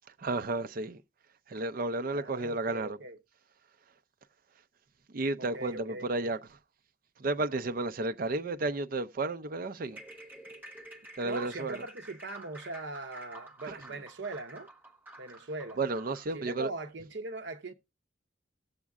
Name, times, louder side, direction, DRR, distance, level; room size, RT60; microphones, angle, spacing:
voice 1, 0.2-1.0 1.5-3.0 5.1-6.4 7.2-10.0 11.2-11.8 13.7-13.8 15.8-16.7, right 2 dB, 45° right, 0.4 m, -32 dB
voice 2, 2.1-3.2 5.4-6.3 11.2-14.7 15.2-15.8 16.3-17.7, right 2 dB, 70° right, 0.8 m, -40 dB
sound 1, 9.9-16.3, right 1 dB, 10° right, 1.0 m, -50 dB
18.0 x 7.2 x 2.3 m
head